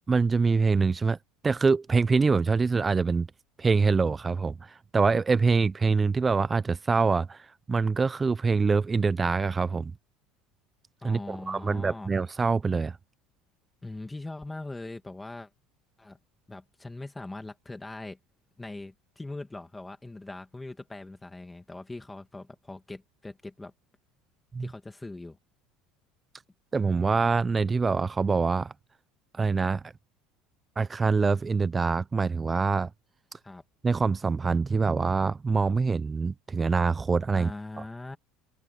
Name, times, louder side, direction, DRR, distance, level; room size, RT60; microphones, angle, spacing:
voice 1, 0.1-1.2 1.4-3.3 3.6-9.9 11.0-13.0 24.5-24.7 26.7-28.7 29.3-29.8 30.8-32.9 33.8-37.5, right 4 dB, 15° right, 0.5 m, -25 dB
voice 2, 11.0-12.1 13.8-15.5 16.0-16.2 16.5-18.2 18.6-23.7 24.6-25.4 33.4-33.6 37.3-38.2, left 2 dB, 10° left, 2.1 m, -41 dB
cardioid pair, 140°, 0 cm